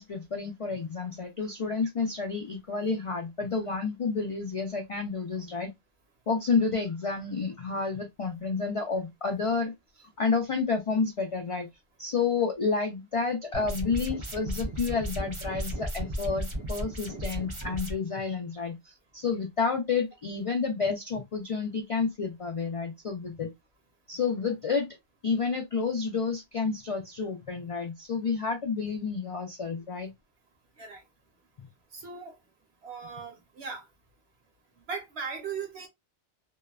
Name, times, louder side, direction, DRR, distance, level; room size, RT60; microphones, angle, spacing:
voice 1, 0.0-5.7 6.3-11.7 12.0-23.5 24.1-25.0 25.2-30.1, left 5 dB, 65° left, 0.3 m, -30 dB
sound 1, 13.5-17.9, equal, 30° right, 0.6 m, -35 dB
voice 2, 31.9-32.3 32.8-33.9 34.9-35.9, right 5 dB, 70° right, 1.2 m, -38 dB
2.7 x 2.0 x 2.3 m
omnidirectional pair, 1.1 m